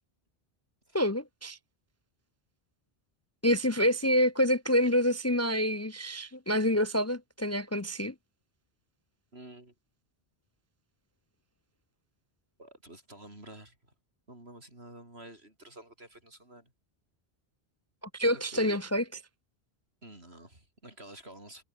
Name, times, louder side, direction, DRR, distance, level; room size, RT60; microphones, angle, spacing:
voice 1, 0.9-1.6 3.4-8.1 18.1-19.0, equal, 20° left, 0.5 m, -27 dB
voice 2, 9.3-9.7 12.6-13.8 14.3-16.7 18.2-18.7 20.0-21.6, right 1 dB, 85° right, 8.3 m, -49 dB
omnidirectional pair, 1.0 m